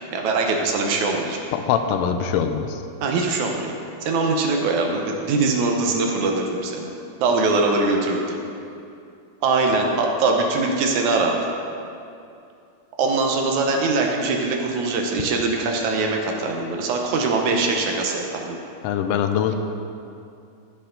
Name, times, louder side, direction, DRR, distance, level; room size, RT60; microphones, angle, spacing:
voice 1, 0.1-1.4 3.0-3.7 4.0-6.9 7.2-8.4 9.4-11.4 13.0-18.6, right 3 dB, 70° right, 1 dB, 2.1 m, -22 dB
voice 2, 1.5-2.8 18.8-19.6, left 8 dB, 85° left, 7 dB, 2.2 m, -23 dB
14.5 x 6.8 x 3.9 m, 2.6 s
omnidirectional pair, 3.7 m